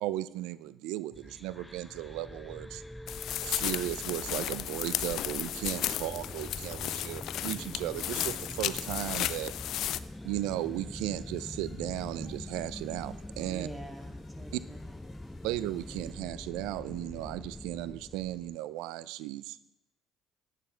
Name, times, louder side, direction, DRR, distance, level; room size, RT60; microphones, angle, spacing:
voice 1, 0.0-2.8 3.4-9.5 10.2-13.7 14.5-14.6 15.4-19.6, right 15 dB, 80° right, 17 dB, 0.4 m, -36 dB
sound 1, 1.1-18.6, left 1 dB, 10° left, 0.4 m, -44 dB
sound 2, 3.1-10.0, left 12 dB, 70° left, 0.4 m, -34 dB
sound 3, 9.2-16.1, left 4 dB, 40° left, 2.7 m, -60 dB
voice 2, 13.5-15.0, right 3 dB, 20° right, 3 dB, 2.3 m, -45 dB
11.0 x 9.1 x 4.5 m, 0.84 s
supercardioid pair, 65°, 0 cm